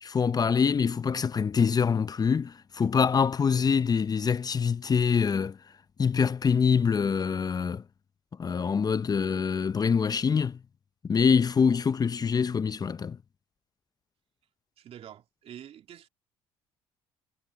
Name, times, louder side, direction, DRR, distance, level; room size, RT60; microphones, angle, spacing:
voice 1, 0.0-5.6 6.0-7.8 8.4-10.6 11.0-13.2, left 6 dB, 35° left, 0.8 m, -25 dB
voice 2, 14.8-16.1, right 10 dB, 55° right, 2.4 m, -47 dB
hypercardioid pair, 65°, 12 cm